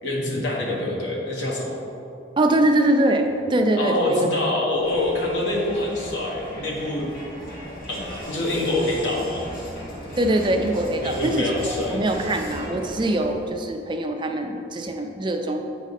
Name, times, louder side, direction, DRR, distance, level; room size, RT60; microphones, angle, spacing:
voice 1, 0.0-1.8 3.8-7.1 7.9-9.5 11.0-12.0, left 1 dB, 75° left, -2 dB, 1.3 m, -25 dB
voice 2, 2.4-4.2 10.2-15.6, right 1 dB, 25° right, 4 dB, 0.4 m, -23 dB
Crowd, 4.7-13.6, equal, 50° left, 1.6 m, -37 dB
8.0 x 4.9 x 4.1 m, 2.7 s
head